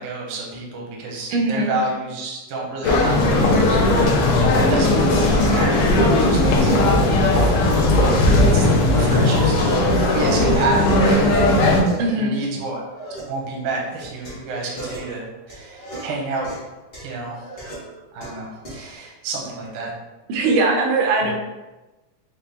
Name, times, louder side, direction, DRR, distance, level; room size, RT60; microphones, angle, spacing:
voice 1, 0.0-3.9 4.6-6.8 7.3-7.6 8.5-8.6 8.9-11.3 12.2-12.8 13.3-16.5 17.0-17.4 18.1-19.9 21.2-21.3, right 3 dB, 70° right, -2 dB, 1.2 m, -29 dB
voice 2, 1.3-1.7 12.0-12.4 20.3-21.3, right 2 dB, 90° right, 1 dB, 2.2 m, -20 dB
sound 1, 2.8-11.8, left 2 dB, 85° left, 1.3 m, -17 dB
sound 2, 5.2-5.9 6.3-7.6 8.0-9.9 10.2-13.2 13.7-18.9, right 2 dB, 70° left, 0.5 m, -36 dB
5.6 x 2.2 x 3.4 m, 1.1 s
omnidirectional pair, 3.4 m